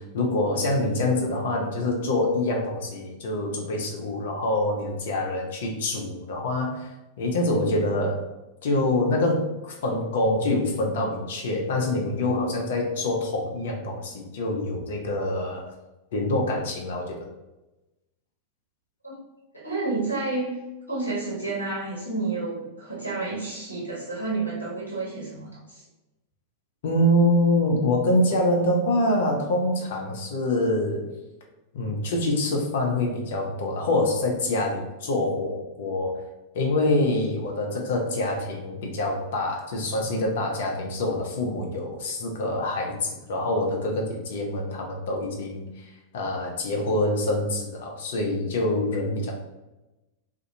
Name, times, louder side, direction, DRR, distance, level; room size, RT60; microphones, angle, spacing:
voice 1, 0.0-6.9 7.2-8.3 8.6-15.7 16.1-17.2 26.8-31.1 31.7-36.2 36.5-49.3, left 1 dB, 55° left, 1 dB, 0.6 m, -25 dB
voice 2, 19.5-20.6 20.9-25.8, right 3 dB, 80° left, -8 dB, 0.9 m, -30 dB
2.6 x 2.5 x 2.6 m, 1.0 s
figure-of-eight pair, 90°, 0 cm